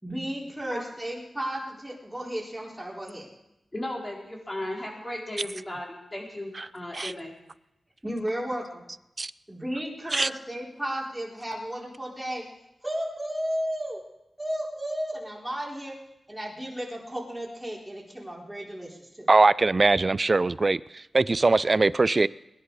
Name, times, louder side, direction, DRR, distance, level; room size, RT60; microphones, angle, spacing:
voice 1, 0.0-3.3 8.0-8.8 9.5-12.5 12.8-14.0 14.4-15.9 16.3-19.3, equal, 10° right, -3 dB, 4.3 m, -33 dB
voice 2, 3.7-7.3, left 1 dB, 25° left, -2 dB, 4.6 m, -35 dB
voice 3, 19.3-22.3, right 3 dB, 40° right, 18 dB, 0.4 m, -22 dB
21.0 x 11.0 x 4.9 m, 0.90 s
wide cardioid pair, 80°, 0 cm